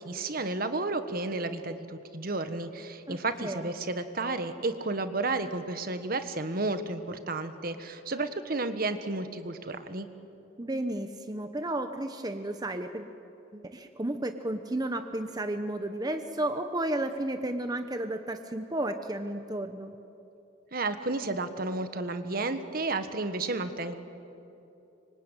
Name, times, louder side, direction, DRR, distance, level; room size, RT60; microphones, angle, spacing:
voice 1, 0.0-10.1 20.7-24.0, right 2 dB, 50° right, 9 dB, 1.5 m, -32 dB
voice 2, 3.1-3.7 10.6-13.1 13.5-19.9, right 1 dB, 20° right, 7 dB, 0.9 m, -33 dB
25.5 x 24.5 x 9.2 m, 2.9 s
head